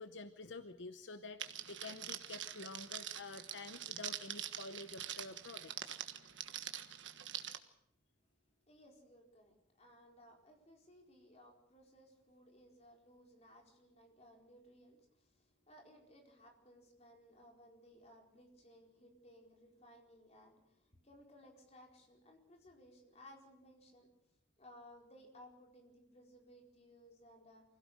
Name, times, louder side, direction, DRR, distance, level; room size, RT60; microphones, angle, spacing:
voice 1, 0.0-6.0, left 3 dB, 70° left, 10 dB, 0.9 m, -49 dB
Crackle, 1.4-7.6, right 10 dB, 75° right, 1.4 m, -45 dB
voice 2, 8.7-24.1 24.6-27.6, equal, 35° left, 1 dB, 4.5 m, -61 dB
25.0 x 17.0 x 6.4 m, 0.82 s
head